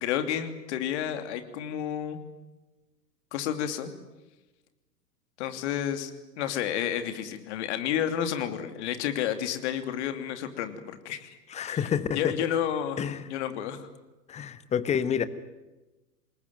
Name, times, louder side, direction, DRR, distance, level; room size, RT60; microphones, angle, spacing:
voice 1, 0.0-2.2 3.3-3.9 5.4-6.1 6.4-11.4 11.6-11.8 12.1-13.9, left 10 dB, 45° left, 8 dB, 2.9 m, -31 dB
voice 2, 11.5-12.4 13.0-13.2 14.3-15.2, left 8 dB, 15° left, 14 dB, 1.2 m, -28 dB
27.5 x 21.0 x 9.4 m, 1.1 s
figure-of-eight pair, 105°, 49 cm